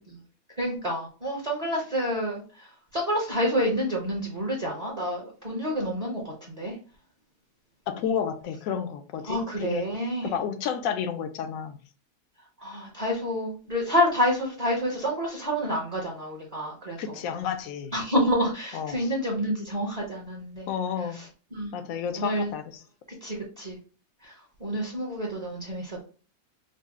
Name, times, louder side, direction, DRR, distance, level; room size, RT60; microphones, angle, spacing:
voice 1, 0.6-2.4 2.9-6.2 6.6-6.7 9.3-10.3 12.6-17.0 17.9-20.7 21.5-21.7 22.2-22.5 23.2-23.8 24.6-26.0, equal, 35° right, -2 dB, 0.8 m, -28 dB
voice 2, 7.9-9.9 10.2-11.8 17.0-17.9 18.7-19.1 20.7-21.2 21.7-22.8, left 7 dB, 70° left, 8 dB, 0.9 m, -31 dB
4.0 x 2.0 x 3.5 m, 0.37 s
omnidirectional pair, 1.6 m